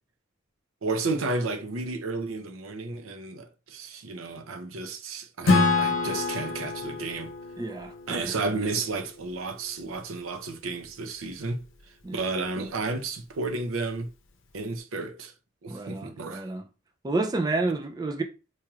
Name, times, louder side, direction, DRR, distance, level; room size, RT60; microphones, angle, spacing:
voice 1, 0.8-7.3 8.1-11.6 12.1-14.1 14.5-15.3 15.6-16.5, right 3 dB, 85° right, 0.7 m, -32 dB
Acoustic guitar / Strum, 5.4-9.0, left 3 dB, 70° left, 0.7 m, -26 dB
voice 2, 7.6-8.3 12.0-12.3 15.7-16.7 17.0-18.2, right 3 dB, 20° right, 0.4 m, -30 dB
4.4 x 3.0 x 2.4 m
head